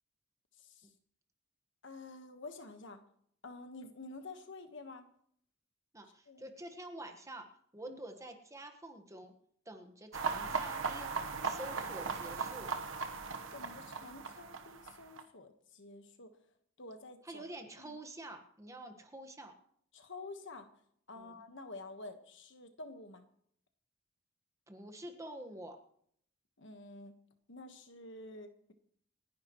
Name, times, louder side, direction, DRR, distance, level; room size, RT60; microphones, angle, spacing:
voice 1, 0.6-0.9 1.8-3.0 3.4-5.1 6.3-6.5 7.9-8.0 10.1-10.6 13.5-16.3 16.8-17.4 17.8-17.9 19.9-20.7 21.1-23.2 26.6-27.1 27.5-28.7, left 2 dB, 65° left, 7 dB, 1.4 m, -49 dB
voice 2, 5.9-7.5 7.7-9.3 9.6-11.2 11.4-12.7 17.2-19.5 21.1-21.4 24.7-25.8, right 1 dB, 15° right, 5 dB, 1.5 m, -48 dB
sound 1, 10.1-15.2, right 5 dB, 75° right, 1.3 m, -38 dB
28.0 x 10.5 x 3.1 m, 0.66 s
head